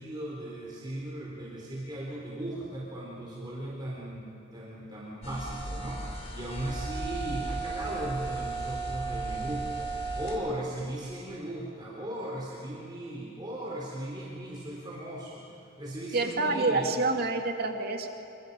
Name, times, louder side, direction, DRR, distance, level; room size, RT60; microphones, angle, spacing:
voice 1, 0.0-16.9, right 1 dB, 20° right, -5 dB, 3.7 m, -37 dB
sound 1, 5.2-10.4, right 3 dB, 30° left, 2.9 m, -35 dB
voice 2, 16.1-18.1, right 3 dB, 50° right, 3 dB, 2.2 m, -27 dB
27.0 x 26.0 x 5.4 m, 2.9 s
head